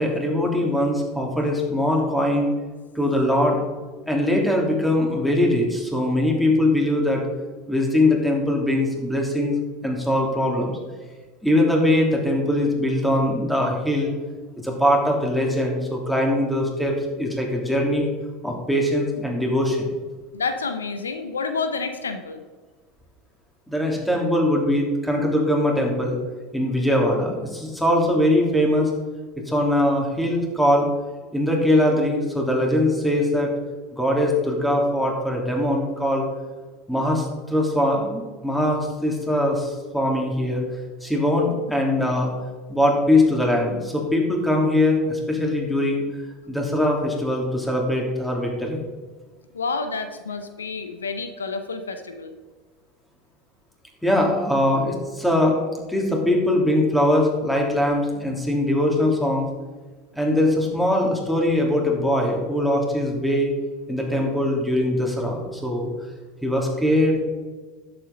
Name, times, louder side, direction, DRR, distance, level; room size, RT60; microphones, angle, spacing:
voice 1, 0.0-2.5 2.9-3.6 4.1-7.2 7.7-9.6 9.8-10.7 11.4-14.1 14.6-18.1 18.4-19.9 23.7-26.2 26.5-28.9 29.5-30.9 31.3-33.5 33.9-36.2 36.9-40.6 41.0-42.3 42.7-46.0 46.5-48.8 54.0-55.6 55.9-59.5 60.1-63.5 63.9-65.9 66.4-67.2, left 1 dB, 5° left, 0 dB, 3.0 m, -21 dB
voice 2, 20.3-22.4 49.5-52.3, left 4 dB, 90° left, 9 dB, 0.7 m, -29 dB
11.0 x 7.9 x 3.9 m, 1.3 s
hypercardioid pair, 80°, 0 cm